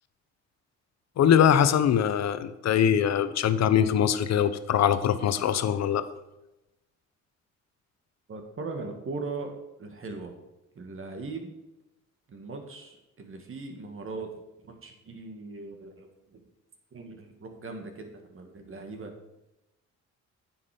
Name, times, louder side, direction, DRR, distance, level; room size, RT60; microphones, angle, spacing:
voice 1, 1.2-6.0, left 9 dB, 60° left, 13 dB, 0.8 m, -22 dB
voice 2, 8.3-10.4 10.8-11.5 12.3-14.3 14.6-16.4 16.9-19.1, right 3 dB, 45° right, 4 dB, 2.1 m, -39 dB
9.9 x 7.3 x 5.1 m, 0.96 s
cardioid pair, 90°, 30 cm